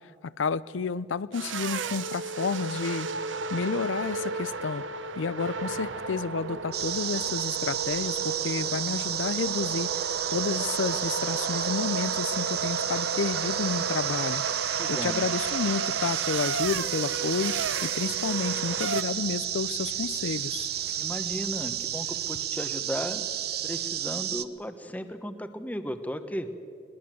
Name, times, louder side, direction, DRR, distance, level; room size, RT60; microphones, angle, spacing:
voice 1, 0.2-3.1 3.5-4.8 5.2-20.7, left 5 dB, 85° left, 18 dB, 0.5 m, -31 dB
sound 1, 1.3-19.0, right 4 dB, 85° right, 1.0 m, -33 dB
sound 2, 6.7-24.4, right 11 dB, 55° right, 0.8 m, -32 dB
sound 3, 12.2-22.4, left 3 dB, 60° left, 2.3 m, -52 dB
voice 2, 14.8-15.2 21.0-23.2 23.6-26.5, equal, 10° left, 9 dB, 1.1 m, -35 dB
21.0 x 20.5 x 7.6 m, 2.4 s
head